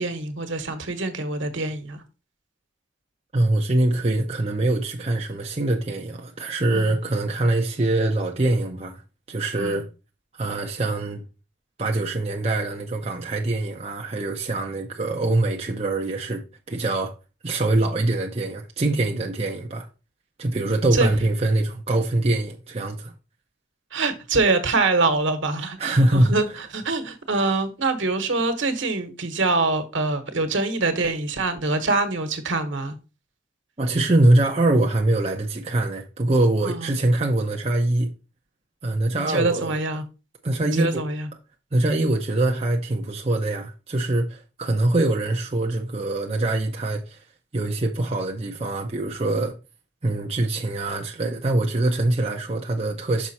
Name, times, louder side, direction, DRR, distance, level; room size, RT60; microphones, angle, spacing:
voice 1, 0.0-2.0 6.7-7.0 9.6-9.8 20.9-21.1 23.9-33.0 36.6-36.9 39.1-40.0 40.6-41.3, right 3 dB, 80° right, 1.3 m, -25 dB
voice 2, 3.3-9.0 9.3-9.9 10.3-11.2 11.8-16.4 16.7-17.1 17.4-19.9 20.4-23.1 25.8-26.3 33.8-38.1 38.8-39.8 40.4-41.0 41.7-47.2 47.5-49.5 50.0-53.3, right 2 dB, 30° right, 0.7 m, -23 dB
6.1 x 5.3 x 4.2 m
head